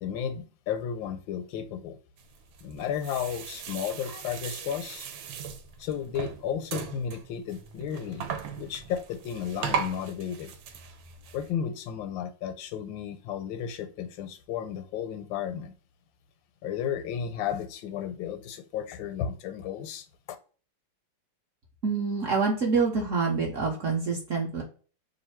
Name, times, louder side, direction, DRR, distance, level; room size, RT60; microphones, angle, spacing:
voice 1, 0.0-2.0 2.6-5.1 5.8-8.2 8.5-10.5 11.3-15.7 16.6-20.1, left 8 dB, 80° left, 10 dB, 1.3 m, -33 dB
sound 1, 2.2-11.5, right 7 dB, 90° right, 1.4 m, -38 dB
voice 2, 21.8-24.6, right 4 dB, 55° right, -1 dB, 0.9 m, -26 dB
3.2 x 2.6 x 4.3 m, 0.38 s
omnidirectional pair, 2.1 m